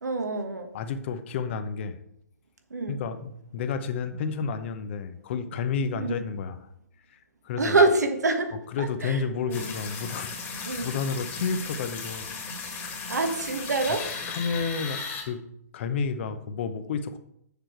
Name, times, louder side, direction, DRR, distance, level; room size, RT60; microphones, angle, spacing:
voice 1, 0.0-0.7 2.7-3.0 5.9-6.2 7.6-9.7 10.6-11.0 13.1-14.1, right 3 dB, 85° right, 5 dB, 1.4 m, -26 dB
voice 2, 0.7-2.0 2.9-6.7 7.1-7.2 7.4-7.8 8.7-12.3 14.3-15.4 15.7-17.2, left 5 dB, 45° left, 10 dB, 0.8 m, -31 dB
sound 1, 9.5-15.2, left 4 dB, 25° left, 1.8 m, -36 dB
6.9 x 6.3 x 4.5 m, 0.74 s
hypercardioid pair, 135°, 9 cm